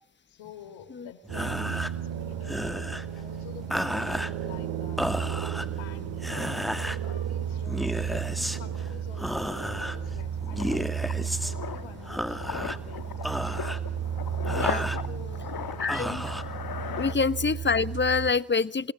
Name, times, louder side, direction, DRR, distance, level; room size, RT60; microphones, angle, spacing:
voice 1, 0.3-5.1 5.5-10.7 11.1-13.6 13.9-14.2 15.1-16.1 17.1-17.3 18.6-18.7, left 10 dB, 75° left, 12 dB, 3.9 m, -49 dB
sound 1, 1.2-17.1, equal, ahead, 2.1 m, -34 dB
sound 2, 1.3-18.3, right 9 dB, 70° right, 3.0 m, -34 dB
sound 3, 8.3-8.4 8.7-17.8 18.0-18.3, left 7 dB, 45° left, 2.3 m, -39 dB
voice 2, 14.5-14.9 15.8-16.2 17.0-18.9, left 4 dB, 25° left, 17 dB, 1.1 m, -26 dB
29.5 x 18.5 x 7.5 m, 0.72 s
supercardioid pair, 65°, 47 cm